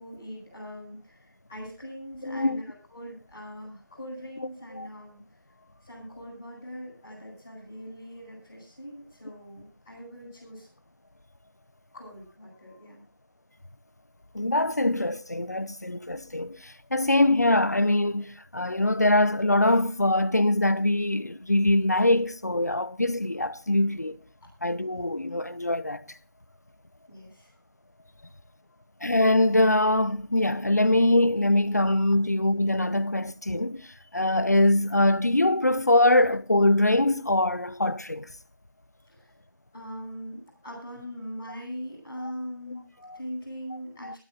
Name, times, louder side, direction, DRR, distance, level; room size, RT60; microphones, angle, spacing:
voice 1, 0.0-10.7 11.9-13.0 24.4-24.5 27.1-27.6 28.7-28.8 39.0-39.3 39.7-44.2, equal, 5° left, 6.4 m, -41 dB
voice 2, 2.2-2.6 4.8-4.9 14.3-24.2 24.6-26.0 29.0-38.3 42.2-42.3 44.0-44.2, left 1 dB, 50° left, 0.8 m, -23 dB
23.5 x 10.0 x 3.9 m
figure-of-eight pair, 180°, 11 cm